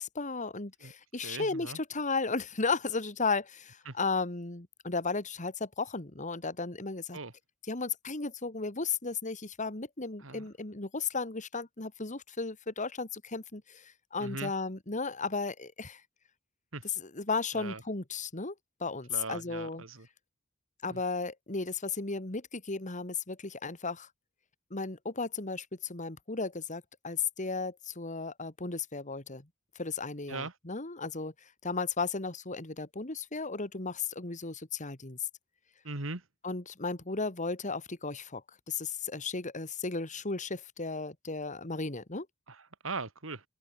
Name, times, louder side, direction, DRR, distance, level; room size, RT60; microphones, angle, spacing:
voice 1, 0.0-7.2 7.7-16.0 16.8-18.5 18.8-19.8 20.8-24.1 24.7-29.5 29.8-31.3 31.6-35.2 36.4-42.3, left 4 dB, 35° left, 2.2 m, -35 dB
voice 2, 1.2-1.8 3.9-4.0 7.1-7.3 10.2-10.4 14.2-14.5 16.7-16.9 17.5-17.8 19.1-20.1 20.9-21.0 30.3-30.5 35.8-36.2 42.5-43.4, right 3 dB, 70° right, 2.6 m, -39 dB
head